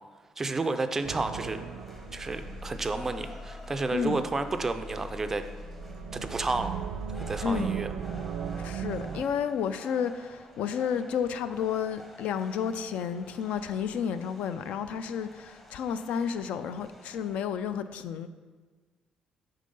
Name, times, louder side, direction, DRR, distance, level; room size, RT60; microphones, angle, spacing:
voice 1, 0.4-1.6 2.1-5.5 6.1-6.8 7.2-7.9, right 3 dB, 15° right, 9 dB, 0.3 m, -31 dB
sound 1, 1.0-3.8 5.4-9.2, right 8 dB, 75° right, 0.5 m, -37 dB
sound 2, 1.1-17.4, left 1 dB, 10° left, 0.8 m, -51 dB
sound 3, 1.9-8.0, left 3 dB, 35° left, 2.2 m, -45 dB
voice 2, 3.9-4.2 7.4-7.7 8.6-18.3, left 7 dB, 70° left, 11 dB, 0.4 m, -31 dB
8.7 x 3.7 x 5.3 m, 1.4 s
cardioid pair, 180°, 2 cm